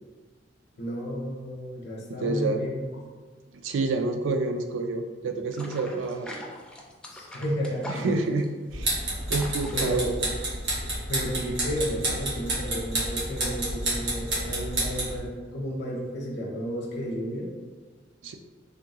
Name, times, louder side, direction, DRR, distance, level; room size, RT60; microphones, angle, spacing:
voice 1, 0.8-2.9 7.1-8.2 9.7-10.1 11.1-17.5, equal, 65° left, -1 dB, 0.6 m, -32 dB
voice 2, 2.1-2.6 3.6-6.3 7.9-9.0 9.3-10.1 18.2-18.4, right 3 dB, 85° right, 6 dB, 0.4 m, -28 dB
sound 1, 5.5-10.8, left 1 dB, 5° left, 0.3 m, -42 dB
sound 2, 8.7-15.2, right 1 dB, 70° right, 1.1 m, -30 dB
3.4 x 2.3 x 2.7 m, 1.4 s
head